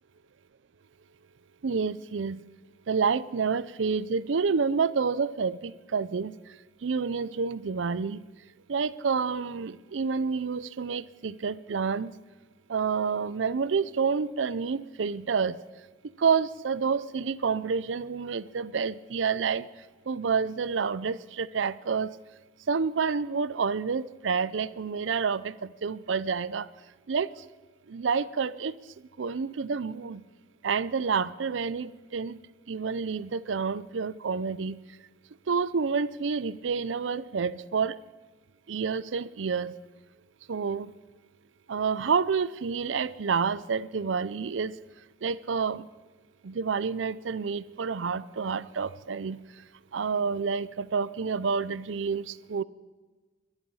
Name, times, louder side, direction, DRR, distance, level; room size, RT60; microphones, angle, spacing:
voice 1, 1.6-2.4 2.9-6.4 6.8-8.2 8.7-12.1 12.7-15.6 16.2-19.7 20.1-22.1 22.7-26.7 27.1-27.3 27.9-28.7 29.2-30.2 30.6-32.4 32.7-34.8 35.5-38.0 38.7-39.7 40.5-40.9 41.7-44.8 45.2-45.8 46.4-49.4 49.9-52.6, right 5 dB, 80° right, 18 dB, 0.5 m, -28 dB
21.5 x 11.5 x 5.5 m, 1.3 s
head